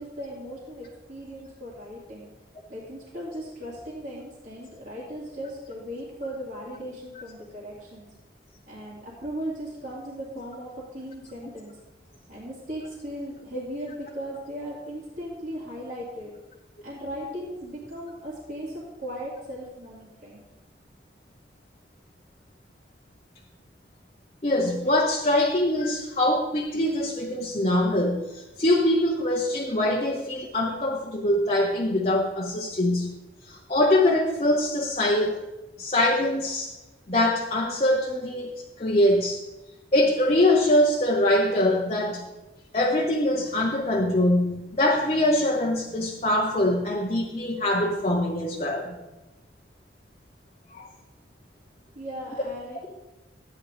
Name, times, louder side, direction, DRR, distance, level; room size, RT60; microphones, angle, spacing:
voice 1, 0.0-2.3 2.7-8.1 8.7-11.8 12.3-16.3 16.8-20.4 51.9-52.9, equal, 45° right, -8 dB, 2.3 m, -37 dB
voice 2, 24.4-33.2 33.5-35.4 35.8-36.7 37.1-38.5 38.8-39.4 39.9-42.2 42.7-49.0 50.7-50.9, left 1 dB, 35° left, -1 dB, 0.9 m, -23 dB
13.0 x 9.4 x 3.4 m, 1.0 s
head